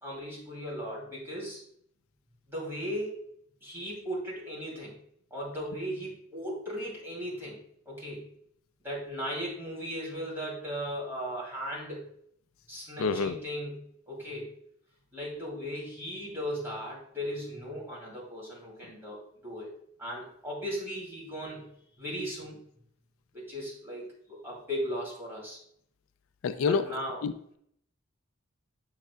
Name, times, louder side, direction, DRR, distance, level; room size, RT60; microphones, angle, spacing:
voice 1, 0.0-1.6 2.5-3.2 3.6-5.0 5.3-7.6 7.9-8.3 8.8-12.1 12.7-14.5 15.1-19.7 20.0-21.7 22.0-22.6 23.3-25.6 26.7-27.2, equal, 10° right, -6 dB, 2.5 m, -37 dB
voice 2, 13.0-13.4 26.4-26.8 27.2-27.6, left 5 dB, 80° left, 12 dB, 0.4 m, -28 dB
7.3 x 6.3 x 2.2 m, 0.68 s
head